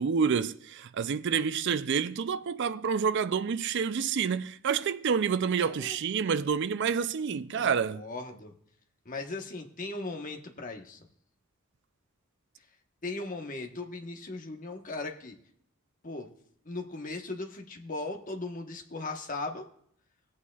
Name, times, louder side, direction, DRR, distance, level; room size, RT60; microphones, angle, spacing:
voice 1, 0.0-8.0, right 6 dB, 55° right, 0.4 m, -28 dB
voice 2, 5.6-6.0 7.5-8.5 9.0-11.1 13.0-15.3 16.0-16.3 16.7-19.6, left 2 dB, 35° left, 1.1 m, -38 dB
18.0 x 8.6 x 2.3 m
head